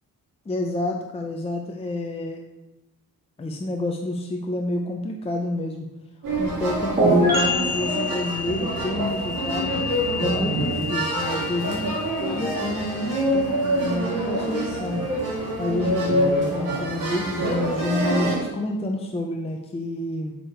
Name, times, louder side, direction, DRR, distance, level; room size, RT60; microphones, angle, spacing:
voice 1, 0.5-2.4 3.4-5.9 6.4-9.8 10.2-15.0 15.6-20.3, left 1 dB, 15° left, 2 dB, 0.6 m, -29 dB
sound 1, 6.2-18.4, right 1 dB, 60° right, 2.9 m, -26 dB
sound 2, 7.0-14.5, left 1 dB, 25° right, 2.6 m, -27 dB
6.6 x 6.1 x 4.5 m, 1.0 s
cardioid pair, 120°, 36 cm